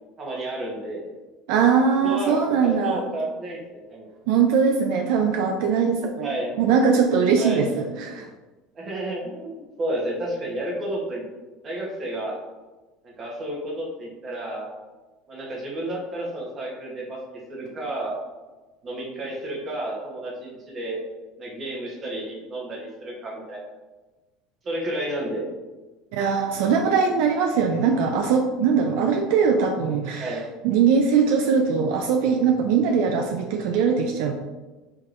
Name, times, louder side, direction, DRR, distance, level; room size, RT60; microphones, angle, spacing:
voice 1, 0.2-1.0 2.0-4.1 6.2-6.5 7.4-7.7 8.7-11.2 11.6-12.4 13.0-14.7 15.3-18.1 18.8-21.0 21.4-23.7 24.6-25.4 30.2-30.4, right 1 dB, 25° right, -3 dB, 1.0 m, -31 dB
voice 2, 1.5-3.0 4.3-6.3 6.6-8.3 26.1-30.4 30.6-34.3, right 6 dB, 65° right, 3 dB, 0.4 m, -21 dB
4.5 x 3.6 x 2.5 m, 1.2 s
cardioid pair, 170°, 0 cm